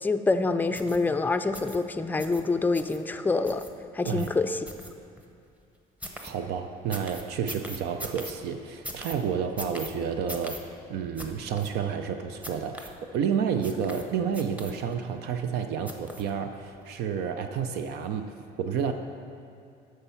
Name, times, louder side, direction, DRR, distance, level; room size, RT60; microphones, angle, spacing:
voice 1, 0.0-3.6 3.9-4.6, left 3 dB, 10° left, 9 dB, 0.4 m, -26 dB
sound 1, 0.7-1.0 1.5-1.8 2.2-2.4 2.7-3.0 3.4-3.7 4.1-4.3 4.7-5.2 6.0-6.3 6.9-8.3 8.8-9.2 9.6-9.9 10.3-10.6 11.2-11.3 11.6-11.7 12.4-12.9 13.6-14.0 14.3-15.0 15.9-16.3 16.8-16.9, equal, 10° right, 0.9 m, -40 dB
voice 2, 6.2-10.6 10.9-18.3 18.6-18.9, right 7 dB, 75° right, 7 dB, 0.6 m, -30 dB
13.0 x 4.6 x 5.7 m, 2.4 s
cardioid pair, 110°, 17 cm